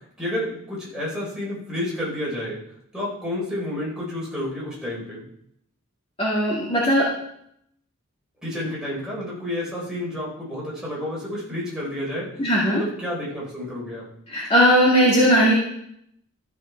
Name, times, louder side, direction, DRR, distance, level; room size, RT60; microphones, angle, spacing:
voice 1, 0.2-2.6 2.9-5.2 8.4-12.3 12.7-14.1, left 1 dB, 5° right, -6 dB, 3.9 m, -30 dB
voice 2, 6.2-7.0 12.4-12.8 14.3-15.5, equal, 30° left, -5 dB, 1.9 m, -18 dB
13.0 x 6.1 x 4.5 m, 0.73 s
head